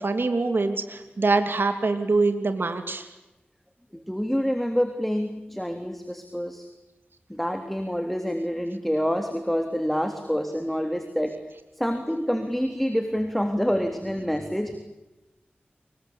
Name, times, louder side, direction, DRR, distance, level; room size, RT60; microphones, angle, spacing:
voice 1, 0.0-3.1, right 3 dB, 65° right, 8 dB, 2.9 m, -24 dB
voice 2, 4.1-6.7 7.3-11.3 11.8-14.8, equal, 5° left, 6 dB, 3.5 m, -27 dB
26.5 x 23.5 x 8.8 m, 1.0 s
wide cardioid pair, 55°, 4 cm